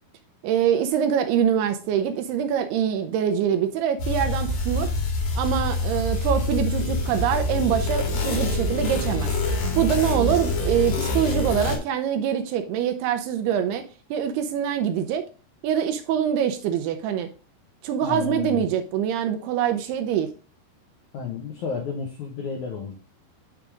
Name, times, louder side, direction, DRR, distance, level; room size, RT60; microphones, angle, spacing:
voice 1, 0.4-4.9 5.4-9.3 9.7-13.8 14.1-15.2 15.6-17.3 17.8-20.3, right 9 dB, 80° right, 2.5 m, -24 dB
sound 1, 4.0-11.8, left 2 dB, 55° left, 3.3 m, -25 dB
voice 2, 18.0-18.6 21.1-22.9, left 6 dB, 75° left, 1.7 m, -32 dB
9.1 x 3.6 x 5.0 m
omnidirectional pair, 4.9 m